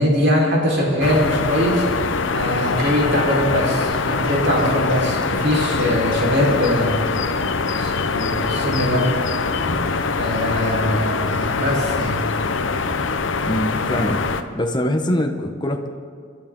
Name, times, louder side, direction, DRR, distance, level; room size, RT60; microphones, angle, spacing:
voice 1, 0.0-7.0 7.8-9.0 10.2-12.2, equal, 65° right, -3 dB, 4.4 m, -21 dB
sound 1, 1.0-14.4, left 4 dB, 80° left, 0.8 m, -23 dB
Percussion / Church bell, 2.8-6.4, left 5 dB, 5° left, 4.5 m, -39 dB
voice 2, 13.4-14.2 14.5-15.9, left 1 dB, 25° left, 4 dB, 1.0 m, -23 dB
27.5 x 12.0 x 3.7 m, 2.1 s
head